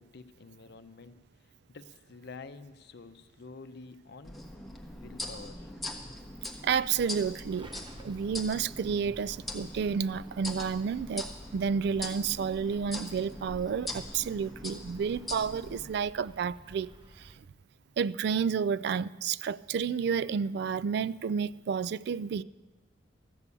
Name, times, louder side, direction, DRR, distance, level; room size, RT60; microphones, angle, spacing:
voice 1, 0.0-4.4 4.7-5.7, left 4 dB, 60° left, 0.6 m, -49 dB
sound 1, 4.2-15.9, left 1 dB, ahead, 1.2 m, -42 dB
voice 2, 6.6-7.7 8.0-11.3 11.5-16.9 18.0-22.4, right 6 dB, 60° right, 0.3 m, -30 dB
sound 2, 7.5-17.3, equal, 25° right, 0.9 m, -53 dB
13.5 x 6.8 x 8.4 m
head